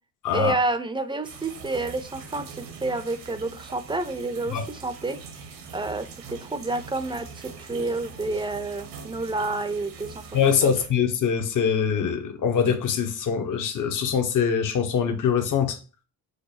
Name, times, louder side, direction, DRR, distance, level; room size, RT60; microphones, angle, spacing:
voice 1, 0.3-5.2 5.7-10.7, right 2 dB, 10° right, 0.6 m, -29 dB
sound 1, 1.2-10.9, right 5 dB, 75° right, 1.1 m, -43 dB
voice 2, 10.3-15.8, left 7 dB, 50° left, 1.0 m, -23 dB
4.8 x 2.1 x 4.0 m
supercardioid pair, 65°, 40 cm